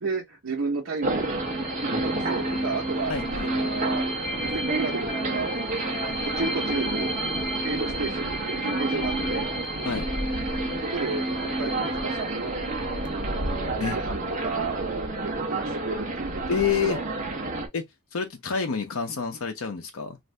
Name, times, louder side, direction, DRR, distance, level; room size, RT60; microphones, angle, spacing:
voice 1, 0.0-1.4 2.0-3.1 3.4-4.1 4.4-5.5 5.9-7.1 7.6-9.5 10.9-11.2 11.6-12.6 13.0-17.0, right 4 dB, 70° right, 0.8 m, -32 dB
sound 1, 1.0-14.4, equal, ahead, 0.5 m, -33 dB
sound 2, 1.0-17.7, right 2 dB, 40° right, 0.8 m, -30 dB
voice 2, 3.1-3.7 9.8-10.1 13.8-14.0 16.5-17.0 17.7-17.8 18.1-20.2, left 6 dB, 80° left, 0.7 m, -28 dB
2.6 x 2.5 x 3.2 m
head